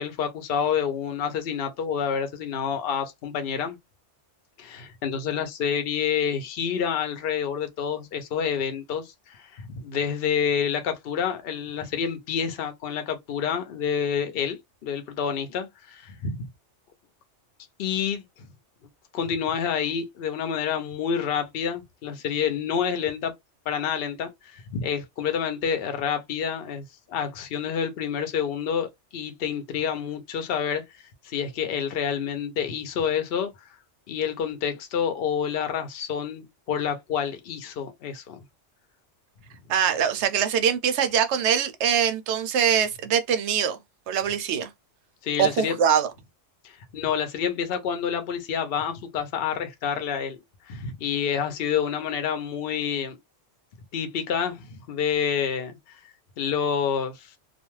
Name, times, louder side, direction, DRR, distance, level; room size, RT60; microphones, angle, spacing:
voice 1, 0.0-3.8 4.6-16.5 17.8-18.5 19.1-23.3 23.7-30.8 31.2-33.5 34.1-38.4 45.2-45.8 46.9-50.4 50.7-53.2 53.9-55.8 56.4-57.3, left 7 dB, 60° left, 0.8 m, -28 dB
voice 2, 39.7-43.8 44.1-44.7 45.4-46.1, right 8 dB, 75° right, 0.8 m, -23 dB
2.4 x 2.2 x 3.0 m
omnidirectional pair, 1.2 m